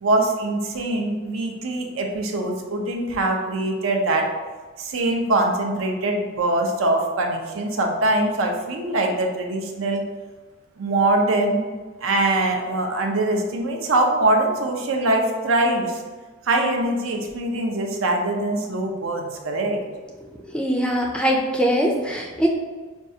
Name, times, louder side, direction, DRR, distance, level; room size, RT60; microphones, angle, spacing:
voice 1, 0.0-4.3 4.8-10.0 10.8-11.6 12.0-16.0 16.4-19.8, right 2 dB, 80° right, 2 dB, 0.6 m, -23 dB
voice 2, 20.5-22.5, equal, 5° left, -1 dB, 0.3 m, -22 dB
5.3 x 2.3 x 2.7 m, 1.4 s
head